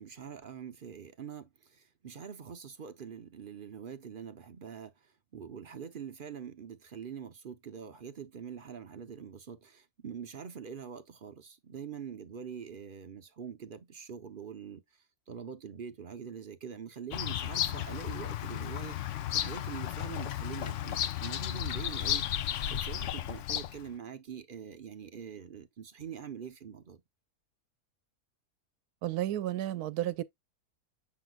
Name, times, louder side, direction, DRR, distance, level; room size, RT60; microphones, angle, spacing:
voice 1, 0.0-4.9 5.3-14.8 15.3-27.0, right 7 dB, 50° right, 0.7 m, -44 dB
Bird vocalization bird call bird song, 17.1-23.9, left 11 dB, 65° left, 0.8 m, -34 dB
voice 2, 29.0-30.2, right 13 dB, 85° right, 1.2 m, -32 dB
7.9 x 5.4 x 2.3 m
omnidirectional pair, 1.6 m